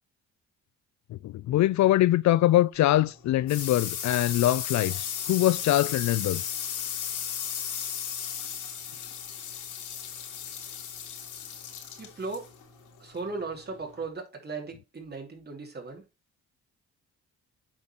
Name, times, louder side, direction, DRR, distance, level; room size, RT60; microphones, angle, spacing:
voice 1, 1.1-6.4, left 14 dB, 65° left, 0.5 m, -23 dB
sound 1, 2.8-14.0, left 8 dB, 85° left, 3.2 m, -36 dB
voice 2, 12.0-12.5 13.0-16.0, right 3 dB, 35° right, 3.3 m, -37 dB
8.7 x 4.3 x 4.4 m
cardioid pair, 90°, 30 cm